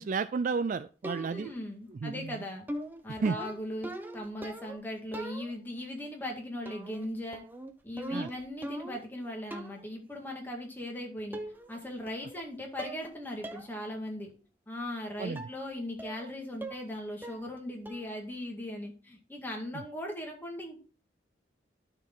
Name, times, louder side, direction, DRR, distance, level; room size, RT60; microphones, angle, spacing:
voice 1, 0.0-1.5 2.0-2.4 3.2-3.4 8.1-8.3 15.2-15.4, right 4 dB, 45° right, 13 dB, 0.3 m, -32 dB
sound 1, 1.0-1.6 2.7-4.8 5.1-5.8 6.7-7.1 7.3-9.1 9.5-9.9 10.8-10.9 11.3-11.8 12.1-12.5 12.8-13.1 13.4-13.7 14.1-14.2 15.4-15.6 16.0-16.3 16.6-16.9 17.2-17.6 17.9-18.2, right 1 dB, 10° right, 0.7 m, -41 dB
voice 2, 1.1-2.7 3.0-7.4 7.8-11.4 11.7-14.3 14.7-20.8, left 1 dB, 10° left, 0 dB, 2.0 m, -39 dB
12.5 x 4.5 x 3.8 m, 0.36 s
head